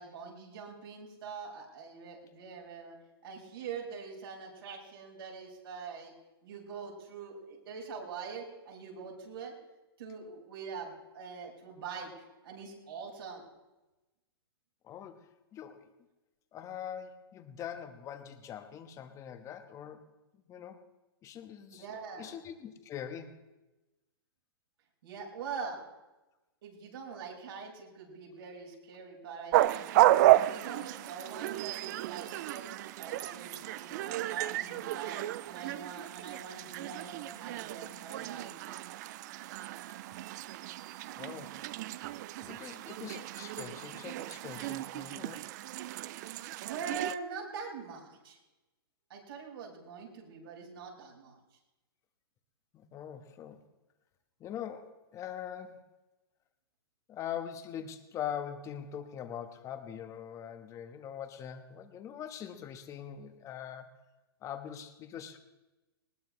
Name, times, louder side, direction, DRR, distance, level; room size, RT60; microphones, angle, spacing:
voice 1, 0.0-3.0 3.2-6.1 6.4-9.5 10.0-12.1 12.4-13.4 21.8-22.4 25.0-25.8 26.6-30.0 30.3-32.6 33.0-38.7 46.4-48.4 49.1-51.4, right 5 dB, 65° right, -2 dB, 5.8 m, -43 dB
voice 2, 14.8-15.9 16.5-20.0 20.5-20.8 21.2-21.9 22.2-23.4 41.1-41.6 42.0-42.1 42.4-45.5 52.7-53.6 54.4-55.8 57.1-64.0 64.4-65.4, left 9 dB, 25° left, 8 dB, 1.4 m, -43 dB
sound 1, 29.5-47.2, right 16 dB, 45° right, 0.5 m, -32 dB
20.0 x 18.5 x 3.3 m, 1.0 s
hypercardioid pair, 135°, 13 cm